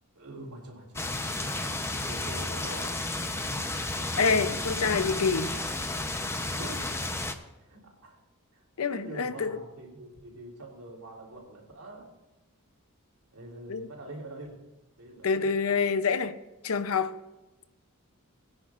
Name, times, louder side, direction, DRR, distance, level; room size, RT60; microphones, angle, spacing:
voice 1, 0.2-1.2 2.1-2.9 6.6-6.8 7.6-8.2 8.5-8.6 8.9-12.1 13.3-14.5 15.0-15.5, right 1 dB, 90° right, 0 dB, 3.4 m, -44 dB
sound 1, 1.0-7.3, left 2 dB, 10° left, 0.8 m, -32 dB
voice 2, 4.2-5.5 8.8-9.6 13.7-13.9 15.2-16.4 16.6-17.2, left 5 dB, 70° left, 12 dB, 0.7 m, -27 dB
21.5 x 9.8 x 2.5 m, 1.1 s
head